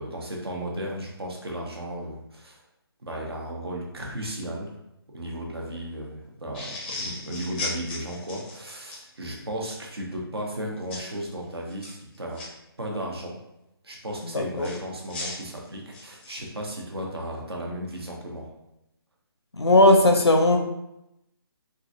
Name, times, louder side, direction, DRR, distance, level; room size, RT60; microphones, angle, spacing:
voice 1, 0.0-2.6 3.0-4.7 5.1-12.4 12.8-13.4 13.8-18.5, right 1 dB, 75° right, -1 dB, 0.8 m, -35 dB
sound 1, 6.5-9.0 10.9-11.1 11.7-12.5 14.6-16.5, left 2 dB, 20° left, 0.4 m, -36 dB
voice 2, 14.3-14.7 19.5-20.6, left 1 dB, 90° left, 4 dB, 0.5 m, -17 dB
3.0 x 2.5 x 2.5 m, 0.87 s
figure-of-eight pair, 150°, 13 cm